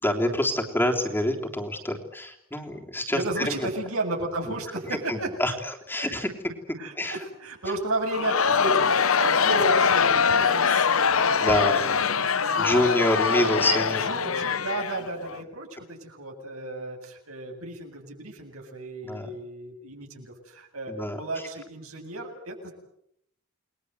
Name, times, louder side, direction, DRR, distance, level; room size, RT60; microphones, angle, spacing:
voice 1, 0.0-3.7 4.9-6.3 6.7-7.2 11.4-12.0 12.6-14.1 19.0-19.3 20.9-21.2, left 1 dB, 10° left, 1 dB, 3.4 m, -27 dB
voice 2, 3.1-5.3 6.0-6.1 6.8-13.1 14.0-22.7, right 2 dB, 80° right, 3 dB, 7.8 m, -34 dB
Crowd, 8.1-15.4, left 6 dB, 70° left, 1.0 m, -23 dB
29.5 x 21.5 x 8.1 m, 0.72 s
head